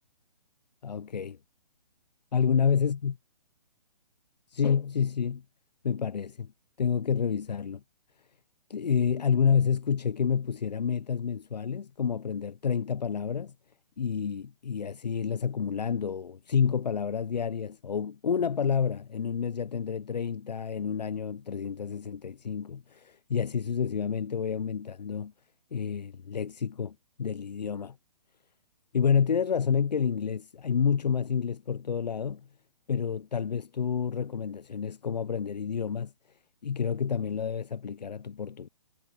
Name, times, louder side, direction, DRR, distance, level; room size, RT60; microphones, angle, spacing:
voice 1, 0.8-1.4 2.3-3.2 4.5-5.4 5.8-6.5 6.8-7.8 8.7-13.5 14.0-25.3 25.7-28.0 28.9-32.4 32.9-36.1 36.6-38.7, left 7 dB, 80° left, 0.6 m, -29 dB
figure-of-eight pair, 135°, 21 cm